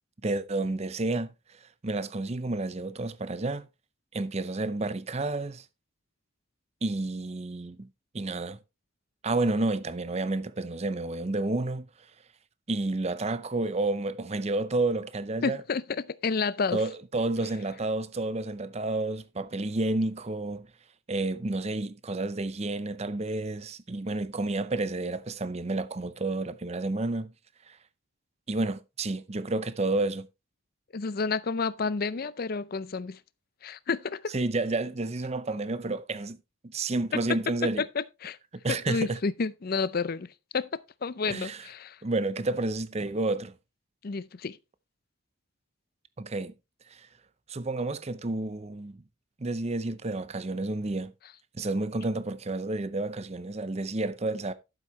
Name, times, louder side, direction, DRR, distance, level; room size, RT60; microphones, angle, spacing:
voice 1, 0.2-1.3 1.8-3.7 4.1-5.6 6.8-7.9 8.1-8.6 9.2-11.9 12.7-15.6 16.7-20.7 21.1-27.3 27.7-27.8 28.5-30.3 34.3-36.4 36.6-37.8 38.6-39.2 41.3-41.7 42.0-43.5 46.2-46.5 46.9-47.1 47.5-49.0 49.4-51.1 51.5-54.5, right 2 dB, 30° right, 0.6 m, -30 dB
voice 2, 15.4-16.8 30.9-33.2 33.6-34.3 37.1-37.2 37.8-38.4 38.7-42.0 44.0-44.6, left 4 dB, 45° left, 0.5 m, -30 dB
12.0 x 7.5 x 3.1 m
head